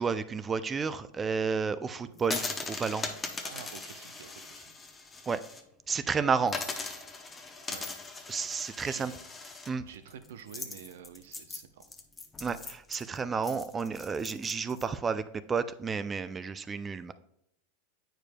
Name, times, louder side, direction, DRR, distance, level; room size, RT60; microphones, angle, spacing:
voice 1, 0.0-3.1 5.3-5.4 5.9-6.6 8.3-9.1 9.7-9.9 12.4-15.2 15.5-17.1, right 5 dB, 20° right, 13 dB, 0.3 m, -31 dB
sound 1, 2.2-5.6 5.9-6.0 6.5-14.8, left 3 dB, 15° left, 0.8 m, -40 dB
voice 2, 3.4-4.7 7.7-7.8 8.8-9.2 9.9-11.9, right 8 dB, 80° right, 10 dB, 0.6 m, -48 dB
8.9 x 4.9 x 2.2 m, 0.77 s
supercardioid pair, 125°, 0 cm